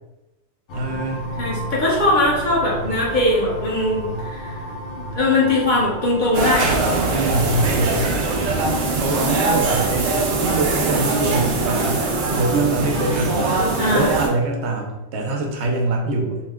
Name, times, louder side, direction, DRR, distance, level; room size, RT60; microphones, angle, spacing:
sound 1, 0.7-11.2, right 1 dB, 80° left, 0.9 m, -34 dB
voice 1, 0.7-1.2 7.1-8.1 9.0-10.1 10.4-12.1 12.3-16.4, right 2 dB, 80° right, 1 dB, 0.9 m, -24 dB
voice 2, 1.4-4.6 5.2-6.8 9.1-9.5 13.8-14.1, left 2 dB, 50° left, -5 dB, 0.9 m, -20 dB
sound 2, 6.3-14.3, right 3 dB, 60° right, 0.6 m, -21 dB
2.7 x 2.1 x 3.5 m, 0.98 s
omnidirectional pair, 1.1 m